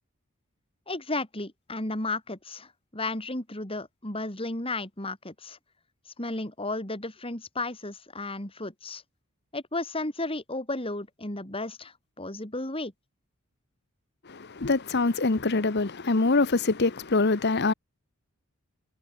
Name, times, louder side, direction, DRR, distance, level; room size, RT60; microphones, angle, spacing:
voice 1, 0.9-5.6 6.2-9.0 9.5-12.9, left 2 dB, 25° left, 3.9 m, -33 dB
voice 2, 14.3-17.7, left 3 dB, 50° left, 1.0 m, -24 dB
head